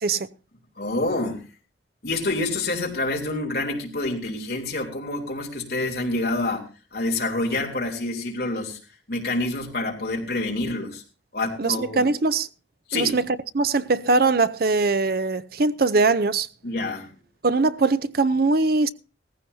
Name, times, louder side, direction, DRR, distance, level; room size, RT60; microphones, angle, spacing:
voice 1, 0.8-1.4 2.0-8.8 9.1-11.0 11.3-12.1 12.9-13.2 16.6-17.1, left 2 dB, 55° left, 3.3 m, -27 dB
voice 2, 11.6-12.5 12.9-13.2 13.5-16.5 17.4-18.9, right 3 dB, 50° right, 0.6 m, -21 dB
17.5 x 15.0 x 2.7 m
head